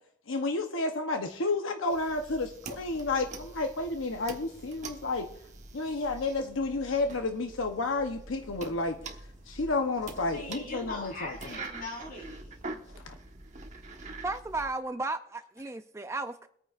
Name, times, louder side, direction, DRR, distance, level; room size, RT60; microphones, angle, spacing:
voice 1, 0.3-5.3 5.7-9.0 9.5-11.3 13.0-13.2, left 3 dB, 80° left, 0.9 m, -31 dB
sound 1, 1.9-14.7, right 3 dB, 35° right, 1.2 m, -45 dB
voice 2, 10.3-12.6, left 2 dB, 45° left, 4.0 m, -41 dB
voice 3, 14.2-16.5, right 3 dB, 15° right, 0.4 m, -34 dB
23.0 x 9.1 x 2.5 m
head